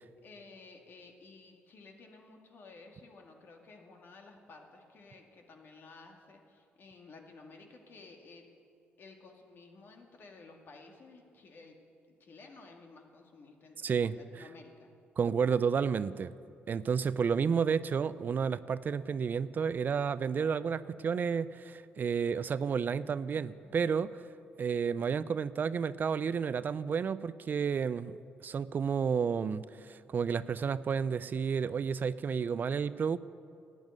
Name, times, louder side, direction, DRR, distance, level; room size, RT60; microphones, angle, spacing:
voice 1, 0.2-8.5 9.0-11.8 12.2-14.9 23.3-24.1, left 3 dB, 55° left, 2 dB, 2.0 m, -54 dB
voice 2, 13.8-14.2 15.2-16.3 16.7-24.2 24.6-28.2 28.4-33.2, right 6 dB, 45° right, 16 dB, 0.4 m, -31 dB
12.0 x 9.4 x 9.5 m, 2.5 s
cardioid pair, 90°, 4 cm